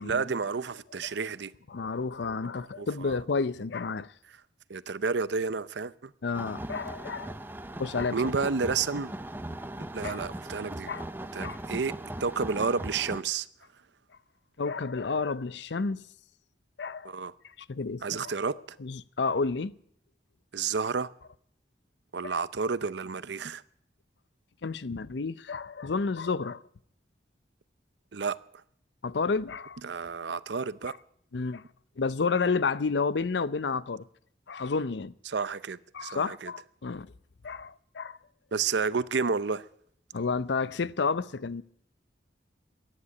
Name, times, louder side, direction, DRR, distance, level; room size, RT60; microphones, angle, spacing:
voice 1, 0.0-1.5 2.8-3.2 4.7-6.1 8.1-9.1 9.9-10.9 11.3-11.9 12.2-13.5 17.0-17.3 18.0-18.6 20.5-21.1 22.1-23.6 28.1-28.4 29.8-30.9 35.3-36.5 38.5-39.7, right 5 dB, 75° right, 0.6 m, -30 dB
voice 2, 1.7-4.1 6.2-7.4 7.8-8.2 10.0-10.2 10.9-11.0 11.4-11.6 14.6-16.0 16.8-17.1 17.7-18.3 18.8-19.7 22.2-22.3 24.6-26.6 29.0-29.8 31.3-31.6 32.0-34.0 34.5-35.1 35.9-37.1 37.4-38.2 40.1-41.6, left 4 dB, 75° left, 0.6 m, -30 dB
sound 1, 6.3-13.2, right 1 dB, 10° right, 0.6 m, -39 dB
15.0 x 10.0 x 9.7 m
head